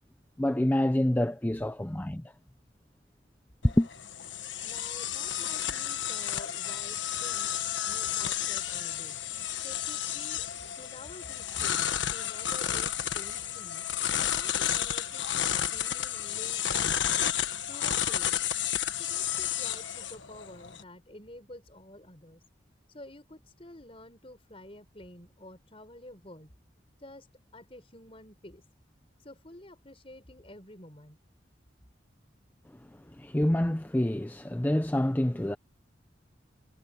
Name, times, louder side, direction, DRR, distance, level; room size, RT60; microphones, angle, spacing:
voice 1, 0.4-2.3 3.6-3.9 33.0-35.6, left 1 dB, 10° left, 0.5 m, -27 dB
sound 1, 3.6-20.8, left 10 dB, 80° left, 1.4 m, -31 dB
voice 2, 4.6-7.5 7.8-9.2 9.6-10.5 10.7-13.8 14.2-17.0 17.7-18.4 18.9-22.4 22.9-26.5 27.0-27.3 27.5-28.6 29.2-31.2, left 1 dB, 30° left, 4.8 m, -49 dB
head